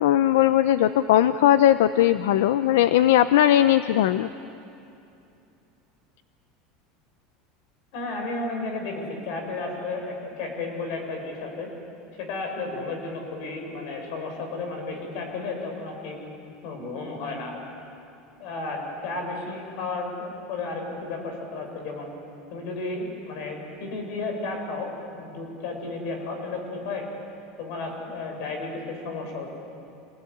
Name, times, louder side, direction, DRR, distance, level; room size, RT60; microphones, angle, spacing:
voice 1, 0.0-4.3, left 12 dB, 90° left, 12 dB, 0.6 m, -19 dB
voice 2, 7.9-11.7 12.2-16.2 16.6-17.6 18.4-22.1 22.5-27.1 27.6-29.5, left 3 dB, 65° left, 3 dB, 6.9 m, -33 dB
27.0 x 19.5 x 10.0 m, 2.7 s
supercardioid pair, 145°, 0 cm